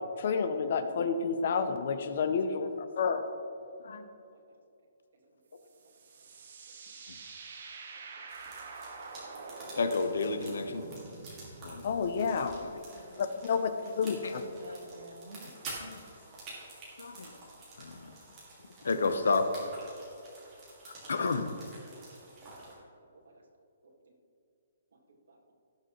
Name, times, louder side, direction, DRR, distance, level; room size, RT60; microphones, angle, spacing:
voice 1, 0.2-3.2 11.8-12.6 13.2-13.7 14.0-14.4, left 5 dB, 40° left, 9 dB, 0.5 m, -30 dB
sound 1, 5.6-12.7, right 4 dB, 40° right, 1.0 m, -47 dB
sound 2, 8.3-22.7, right 2 dB, 15° right, 2.0 m, -49 dB
voice 2, 9.7-10.9 11.6-11.9 12.5-12.7 14.1-14.3 15.8-16.0 17.0-17.3 17.8-18.1 18.8-19.5 20.9-21.5, left 4 dB, 75° left, 8 dB, 0.9 m, -31 dB
voice 3, 12.7-15.5 17.3-17.4 18.8-18.9 21.7-22.3 22.7-22.8 23.1-23.4 23.8-23.9 25.1-25.4, right 2 dB, 65° right, 0 dB, 1.7 m, -52 dB
16.5 x 6.6 x 3.1 m, 2.7 s
hypercardioid pair, 180°, 0 cm